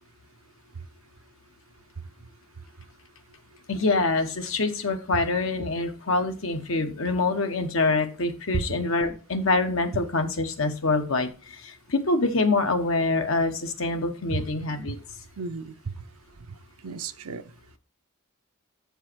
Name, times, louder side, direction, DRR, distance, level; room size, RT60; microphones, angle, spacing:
voice 1, 3.7-15.0, left 3 dB, 65° left, 1.0 m, -25 dB
voice 2, 15.4-15.9 16.8-17.4, right 4 dB, 85° right, 0.6 m, -32 dB
7.7 x 4.6 x 4.4 m
head